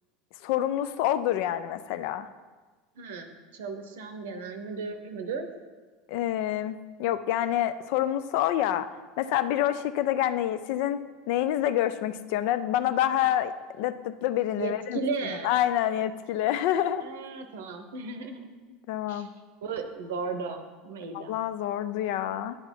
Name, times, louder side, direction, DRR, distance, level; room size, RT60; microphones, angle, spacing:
voice 1, 0.4-2.3 6.1-8.9 9.2-11.0 11.3-15.0 15.4-17.0 18.9-19.3 21.1-22.6, left 12 dB, 55° left, 12 dB, 0.4 m, -27 dB
voice 2, 3.0-5.5 14.6-15.5 16.8-18.4 19.1-19.3 19.6-21.4, right 4 dB, 65° right, 8 dB, 0.7 m, -35 dB
9.2 x 3.9 x 5.6 m, 1.4 s
figure-of-eight pair, 75°, 0 cm